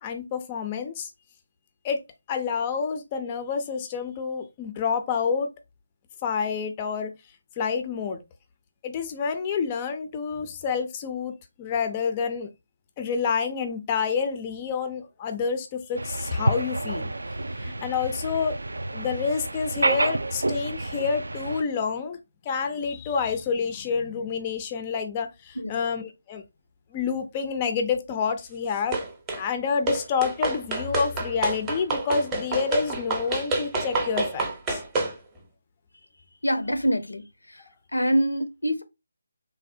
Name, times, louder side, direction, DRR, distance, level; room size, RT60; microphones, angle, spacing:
voice 1, 0.0-1.1 1.8-2.0 2.3-5.5 6.2-7.1 7.6-8.2 8.8-11.3 11.6-12.5 13.0-17.1 17.6-18.6 18.9-22.2 22.5-26.4 26.9-29.0 29.4-34.8, left 6 dB, 20° left, 0.4 m, -28 dB
sound 1, 15.9-21.6, right 2 dB, 75° right, 0.3 m, -29 dB
sound 2, 28.9-29.4 29.9-35.2, right 2 dB, 15° right, 0.7 m, -28 dB
voice 2, 36.4-37.2 37.5-37.6 37.9-38.8, equal, 90° left, 0.6 m, -25 dB
3.2 x 2.1 x 2.6 m
figure-of-eight pair, 155°, 0 cm